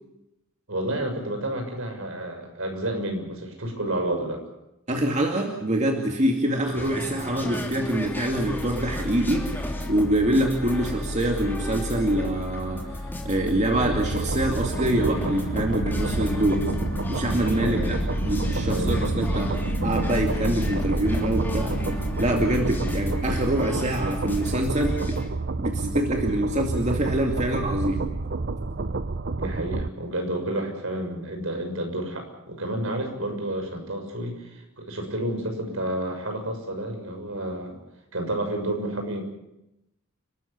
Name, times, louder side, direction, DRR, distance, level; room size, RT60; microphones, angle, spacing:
voice 1, 0.7-4.4 17.5-17.9 18.6-19.2 29.3-37.8 38.1-39.2, right 1 dB, 70° right, 4 dB, 6.8 m, -30 dB
voice 2, 4.9-12.8 13.2-16.7 17.1-18.0 18.3-19.5 19.8-25.2 25.6-28.0, right 1 dB, 35° right, 2 dB, 2.4 m, -25 dB
sound 1, 6.7-25.3, left 1 dB, 10° left, 3.1 m, -36 dB
sound 2, 8.0-24.9, left 1 dB, 60° left, 1.7 m, -33 dB
sound 3, 13.8-29.9, right 3 dB, 50° right, 0.8 m, -29 dB
30.0 x 14.0 x 8.5 m, 0.87 s
head